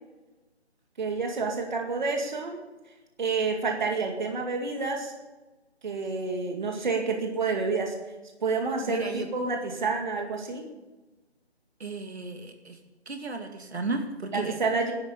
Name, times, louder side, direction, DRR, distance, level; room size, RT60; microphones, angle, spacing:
voice 1, 1.0-2.6 3.2-5.1 5.8-8.0 8.4-10.7 14.3-14.9, right 4 dB, 45° right, 3 dB, 2.2 m, -29 dB
voice 2, 8.9-9.3 11.8-12.8 13.1-14.6, right 3 dB, 70° right, 5 dB, 2.3 m, -34 dB
11.5 x 10.0 x 8.4 m, 1.1 s
figure-of-eight pair, 165°, 33 cm